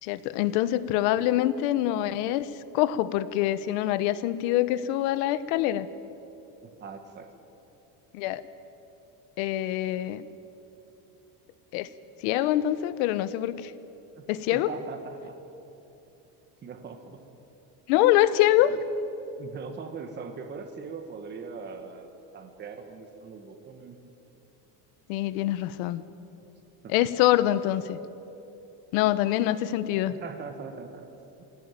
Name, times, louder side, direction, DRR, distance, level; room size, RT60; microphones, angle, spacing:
voice 1, 0.0-2.5 2.7-5.9 8.1-8.4 9.4-10.3 11.7-11.9 12.2-13.7 14.3-14.7 17.9-18.8 25.1-26.0 26.9-28.0 28.9-30.1, left 14 dB, 90° left, 15 dB, 1.1 m, -25 dB
voice 2, 6.6-7.3 14.1-15.4 16.6-17.2 18.6-18.8 19.4-24.0 26.8-26.9 30.0-31.0 31.4-31.5, right 5 dB, 25° right, 6 dB, 1.4 m, -41 dB
22.5 x 17.0 x 9.1 m, 2.9 s
cardioid pair, 175°, 43 cm